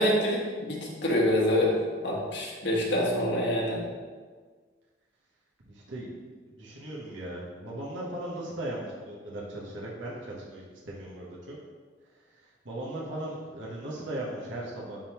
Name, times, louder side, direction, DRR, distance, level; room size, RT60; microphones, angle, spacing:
voice 1, 0.0-1.7 2.0-3.8, left 1 dB, 65° left, -3 dB, 1.4 m, -26 dB
voice 2, 5.7-6.1 6.5-11.6 12.3-15.0, right 1 dB, 75° right, -5 dB, 1.2 m, -38 dB
10.5 x 3.6 x 3.0 m, 1.5 s
head